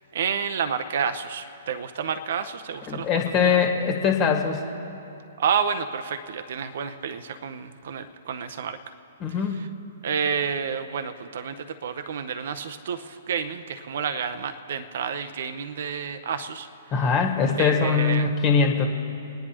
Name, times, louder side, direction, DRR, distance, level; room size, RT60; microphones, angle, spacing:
voice 1, 0.1-3.6 5.4-8.8 9.5-9.7 10.0-16.7 16.9-17.1 17.6-18.3, right 7 dB, 60° right, 10 dB, 0.7 m, -30 dB
voice 2, 2.9-4.6 9.2-9.6 16.9-18.9, left 6 dB, 30° left, 2 dB, 1.6 m, -22 dB
28.0 x 10.0 x 3.0 m, 2.6 s
figure-of-eight pair, 120°, 0 cm